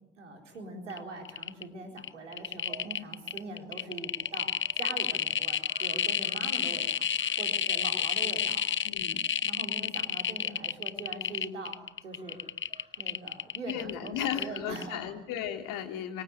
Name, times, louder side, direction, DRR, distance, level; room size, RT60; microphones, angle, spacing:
voice 1, 0.2-8.6 9.4-12.4 13.0-15.2, right 2 dB, 85° right, 3 dB, 4.1 m, -42 dB
sound 1, 0.9-1.0 1.2-1.6 2.0-15.0 15.3-15.4, left 8 dB, 35° left, 0.9 m, -30 dB
sound 2, 2.1-13.6, right 3 dB, 15° right, 7.9 m, -57 dB
voice 2, 8.8-9.3 13.7-16.2, left 9 dB, 65° left, 6 dB, 3.0 m, -35 dB
25.5 x 24.5 x 8.1 m, 0.91 s
figure-of-eight pair, 50°, 36 cm